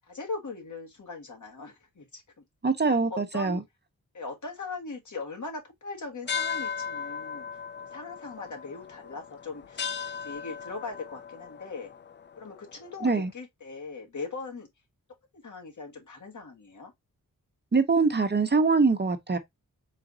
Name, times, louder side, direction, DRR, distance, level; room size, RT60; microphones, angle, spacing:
voice 1, 0.0-2.4 2.8-3.6 4.1-7.6 7.9-9.8 10.2-11.9 12.4-14.7 15.3-16.9, left 3 dB, 60° left, 1.5 m, -40 dB
voice 2, 2.6-3.6 13.0-13.3 17.7-19.4, right 4 dB, 30° right, 0.6 m, -23 dB
sound 1, 6.3-13.1, left 6 dB, 35° left, 0.4 m, -37 dB
4.0 x 2.5 x 3.7 m
wide cardioid pair, 70°, 34 cm